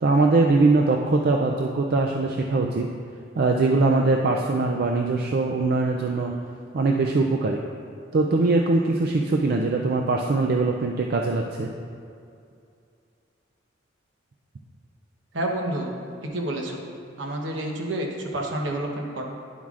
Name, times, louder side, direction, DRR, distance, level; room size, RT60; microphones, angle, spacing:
voice 1, 0.0-2.9 3.4-6.3 6.7-7.6 8.1-11.7, right 3 dB, 50° right, 1 dB, 0.4 m, -22 dB
voice 2, 15.3-15.9 16.2-16.8 17.2-19.2, right 1 dB, 70° right, 1 dB, 1.0 m, -29 dB
10.0 x 7.2 x 2.5 m, 2.4 s
head